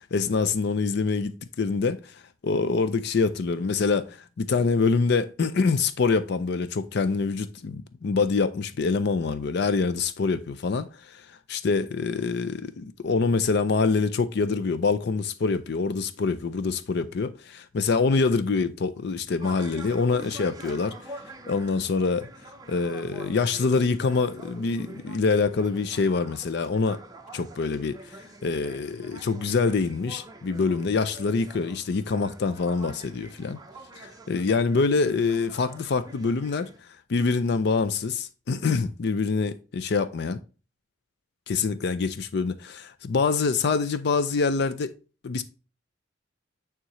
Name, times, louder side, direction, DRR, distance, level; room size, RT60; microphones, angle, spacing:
voice 1, 0.1-1.3 1.6-20.9 21.5-22.3 22.7-27.0 27.3-28.2 28.4-33.6 34.0-36.7 37.1-40.4 41.5-44.9 45.2-45.4, left 4 dB, 55° left, 0.4 m, -25 dB
sound 1, 19.4-36.8, right 2 dB, 20° right, 0.7 m, -46 dB
9.1 x 3.7 x 3.0 m
head